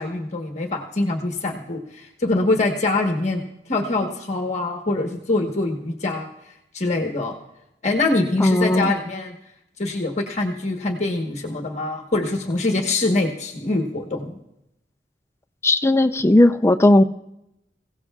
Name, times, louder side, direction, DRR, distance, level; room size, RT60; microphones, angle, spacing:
voice 1, 0.0-3.4 3.7-6.3 6.7-7.3 7.8-9.3 9.8-14.4, left 2 dB, 40° left, 2 dB, 1.3 m, -24 dB
voice 2, 8.4-8.9 15.6-17.0, left 1 dB, 15° left, 9 dB, 0.5 m, -16 dB
27.0 x 16.5 x 2.4 m, 0.85 s
head